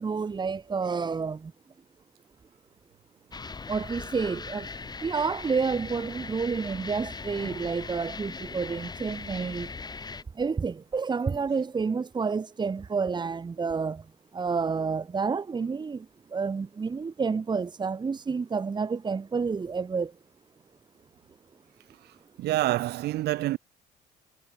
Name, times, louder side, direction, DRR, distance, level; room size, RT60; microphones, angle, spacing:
voice 1, 0.0-1.5 3.7-4.7 5.0-9.7 10.3-14.1 14.3-20.1, right 5 dB, 25° right, 2.1 m, -29 dB
sound 1, 3.3-10.2, left 4 dB, 25° left, 5.2 m, -39 dB
voice 2, 22.4-23.6, right 15 dB, 75° right, 2.6 m, -27 dB
cardioid pair, 110°, 17 cm